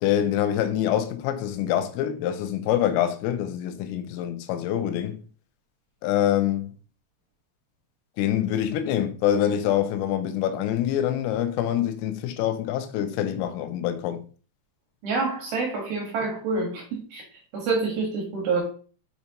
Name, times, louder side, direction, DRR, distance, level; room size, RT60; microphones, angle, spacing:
voice 1, 0.0-5.2 6.0-6.7 8.2-14.2, left 11 dB, 90° left, 3.4 m, -25 dB
voice 2, 15.0-17.2 17.5-18.6, right 4 dB, 60° right, 2.8 m, -27 dB
7.6 x 5.6 x 3.0 m
omnidirectional pair, 5.8 m